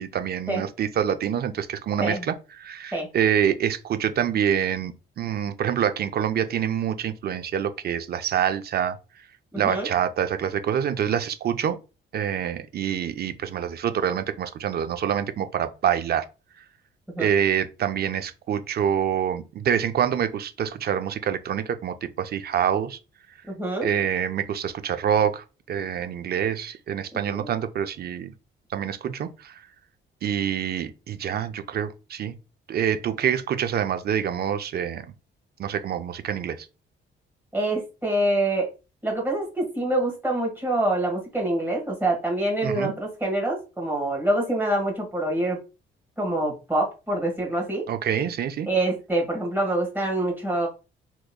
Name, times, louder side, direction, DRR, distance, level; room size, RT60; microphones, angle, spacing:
voice 1, 0.0-9.0 9.6-11.8 12.1-16.2 17.2-23.0 23.8-28.3 28.7-29.5 30.2-32.3 32.7-35.1 35.6-36.7 42.6-42.9 47.9-48.7, right 9 dB, 55° right, 0.5 m, -26 dB
voice 2, 9.5-9.9 17.1-17.3 23.5-23.9 27.3-27.5 37.5-38.7 39.0-45.6 46.2-47.9 48.7-50.7, right 1 dB, 10° right, 1.6 m, -25 dB
3.6 x 3.0 x 2.2 m
cardioid pair, 90°, 20 cm